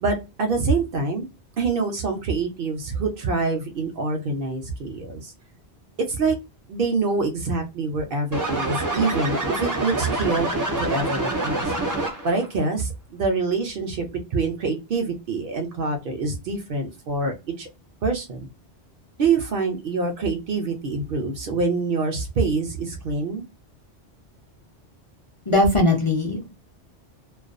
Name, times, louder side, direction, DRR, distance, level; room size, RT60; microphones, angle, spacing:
voice 1, 0.0-1.3 1.6-5.3 6.0-6.4 6.7-10.5 10.8-11.7 12.2-17.7 18.0-18.5 19.2-23.4, right 4 dB, 60° right, 4 dB, 0.7 m, -25 dB
sound 1, 8.3-12.5, right 2 dB, 25° right, 0.4 m, -26 dB
voice 2, 25.5-26.5, left 2 dB, 35° left, -2 dB, 0.5 m, -19 dB
2.3 x 2.2 x 2.5 m, 0.26 s
omnidirectional pair, 1.2 m